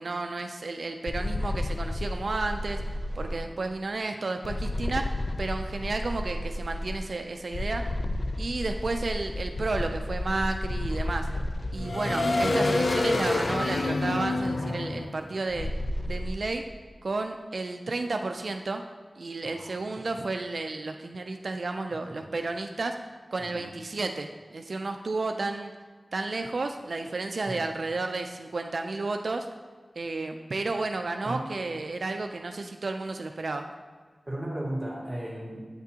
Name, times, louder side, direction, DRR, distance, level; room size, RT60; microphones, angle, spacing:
voice 1, 0.0-2.8 3.2-5.1 5.4-7.8 8.4-11.3 11.7-15.7 16.1-16.6 17.0-18.8 19.2-23.0 23.3-25.7 26.1-29.5 30.0-33.6, right 3 dB, 75° right, 5 dB, 0.3 m, -32 dB
sound 1, 1.1-3.4 4.4-7.0 7.5-16.3, left 2 dB, 60° left, 0.4 m, -29 dB
voice 2, 19.4-20.1 22.1-22.3 23.4-23.7 27.4-27.7 31.2-31.4 34.3-35.6, right 1 dB, 10° right, -5 dB, 2.1 m, -36 dB
8.6 x 5.9 x 2.8 m, 1.5 s
wide cardioid pair, 75°, 0 cm